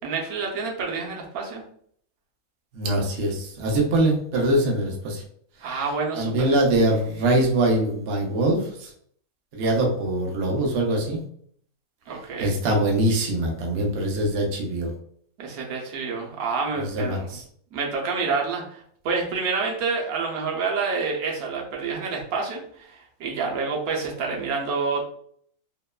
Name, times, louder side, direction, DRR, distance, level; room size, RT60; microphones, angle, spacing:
voice 1, 0.0-1.6 5.6-6.5 12.1-12.6 15.4-17.4 17.7-25.0, right 4 dB, 80° right, 0 dB, 1.1 m, -28 dB
voice 2, 2.7-5.2 6.1-8.9 9.5-11.2 12.4-14.9 16.8-17.4, right 1 dB, 60° right, 0 dB, 0.7 m, -23 dB
2.9 x 2.1 x 2.2 m, 0.62 s
omnidirectional pair, 1.5 m